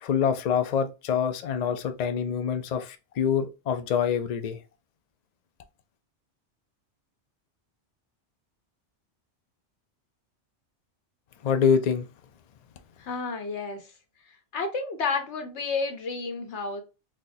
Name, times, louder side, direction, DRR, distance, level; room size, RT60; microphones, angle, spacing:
voice 1, 0.0-4.6 11.4-12.1, left 7 dB, 55° left, 0.4 m, -25 dB
voice 2, 13.0-13.9 14.5-16.8, left 4 dB, 80° left, 1.1 m, -31 dB
4.2 x 2.1 x 2.6 m
omnidirectional pair, 1.2 m